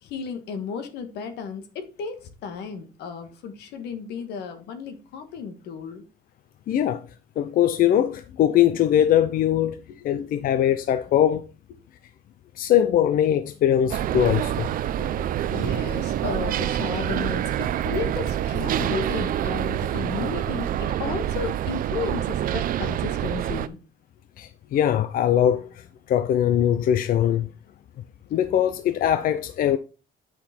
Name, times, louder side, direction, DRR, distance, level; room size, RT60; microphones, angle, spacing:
voice 1, 0.0-6.0 10.1-10.2 15.0-15.1 15.5-23.8, left 6 dB, 80° left, 1.6 m, -34 dB
voice 2, 6.7-7.1 7.4-9.8 10.0-11.4 12.6-14.7 24.4-27.5 28.3-29.8, left 10 dB, 55° left, 0.6 m, -21 dB
sound 1, 13.9-23.7, right 11 dB, 55° right, 0.6 m, -26 dB
8.5 x 5.8 x 4.3 m
cardioid pair, 110°, 17 cm